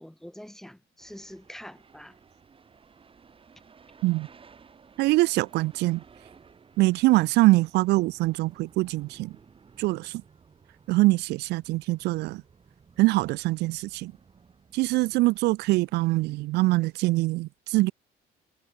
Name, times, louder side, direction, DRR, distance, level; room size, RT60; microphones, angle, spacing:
voice 1, 0.0-2.2, equal, ahead, 1.7 m, -45 dB
sound 1, 1.0-16.3, right 5 dB, 30° right, 7.4 m, -56 dB
voice 2, 5.0-6.0 6.8-9.3 9.8-10.2 10.9-12.4 13.0-14.1 14.7-17.9, right 20 dB, 80° right, 0.4 m, -23 dB
cardioid pair, 110°, 17 cm